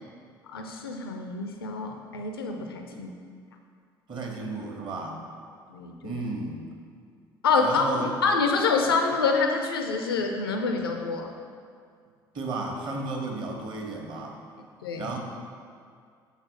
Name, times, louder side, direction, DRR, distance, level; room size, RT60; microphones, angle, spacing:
voice 1, 0.5-3.1 5.7-6.2 7.4-7.8 8.2-11.3 14.8-15.2, left 4 dB, 80° left, 4 dB, 0.5 m, -26 dB
voice 2, 4.1-5.2 6.0-6.7 7.6-8.1 12.3-14.4 15.0-15.2, right 2 dB, 40° right, 1 dB, 1.3 m, -33 dB
6.2 x 4.0 x 6.2 m, 2.2 s
figure-of-eight pair, 55°, 12 cm